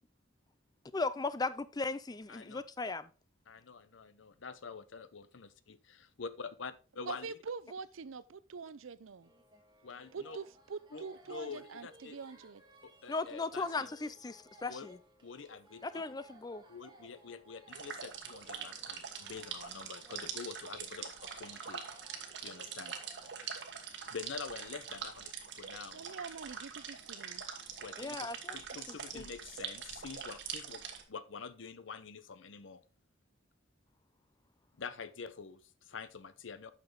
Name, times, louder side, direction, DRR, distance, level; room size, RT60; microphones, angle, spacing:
voice 1, 0.9-3.1 13.1-15.0 15.8-16.6 28.0-28.6 28.9-29.2, left 3 dB, 20° left, 0.5 m, -37 dB
voice 2, 2.3-2.6 3.5-7.3 9.8-10.4 10.9-12.2 12.8-13.9 14.6-14.9 15.2-16.0 16.7-21.8 22.4-22.9 23.4-23.5 24.1-26.0 27.8-28.2 28.5-30.8 31.1-32.8 34.8-36.7, left 5 dB, 75° left, 0.7 m, -46 dB
voice 3, 7.1-9.3 10.1-12.6 25.9-27.4, right 5 dB, 90° right, 0.5 m, -44 dB
sound 1, 9.2-23.3, right 2 dB, 25° right, 1.8 m, -60 dB
sound 2, 17.7-31.0, right 7 dB, 60° right, 1.3 m, -44 dB
8.9 x 5.9 x 3.7 m
head